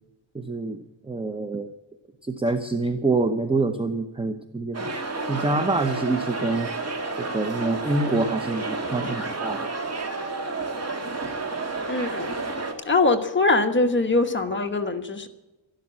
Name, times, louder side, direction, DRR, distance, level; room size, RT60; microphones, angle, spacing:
voice 1, 0.3-1.7 2.2-4.9 5.3-6.7 7.2-9.7, right 3 dB, 10° right, 8 dB, 0.8 m, -26 dB
sound 1, 4.7-12.7, right 3 dB, 35° right, 2.1 m, -30 dB
voice 2, 9.0-9.3 11.9-12.3 12.8-15.3, left 3 dB, 25° left, 5 dB, 1.3 m, -23 dB
12.5 x 12.0 x 8.3 m, 1.0 s
wide cardioid pair, 135°, 45 cm